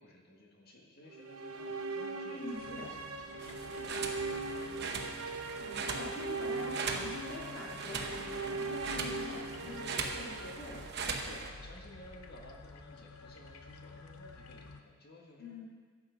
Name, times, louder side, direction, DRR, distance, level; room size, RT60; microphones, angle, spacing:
voice 1, 0.0-5.1 11.2-15.6, left 1 dB, 45° left, 0 dB, 1.7 m, -55 dB
sound 1, 1.1-11.3, right 3 dB, 90° right, 0.8 m, -40 dB
voice 2, 2.3-2.9 5.6-10.8 15.4-15.6, left 2 dB, 65° left, -5 dB, 2.5 m, -45 dB
sound 2, 2.5-14.8, left 3 dB, 85° left, 0.8 m, -51 dB
sound 3, 3.4-11.5, right 4 dB, 50° right, 0.9 m, -40 dB
12.5 x 7.7 x 5.2 m, 1.5 s
head